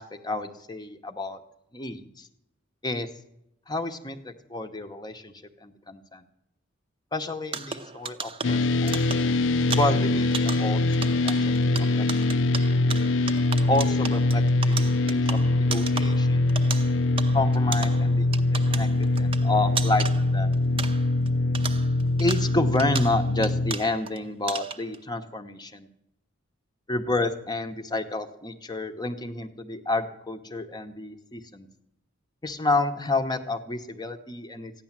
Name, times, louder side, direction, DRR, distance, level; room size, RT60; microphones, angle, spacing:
voice 1, 0.0-1.4 1.7-2.3 2.8-3.1 3.7-5.3 5.6-6.2 7.1-9.1 9.8-12.0 13.7-16.5 17.3-20.5 22.2-25.9 26.9-31.7 32.4-34.7, left 2 dB, 20° left, 7 dB, 0.9 m, -30 dB
sound 1, 7.5-21.3 21.5-24.2 24.5-25.0, right 5 dB, 25° right, 0.7 m, -36 dB
sound 2, 8.4-23.7, left 2 dB, 65° left, 0.6 m, -23 dB
14.5 x 10.0 x 7.3 m, 0.82 s
head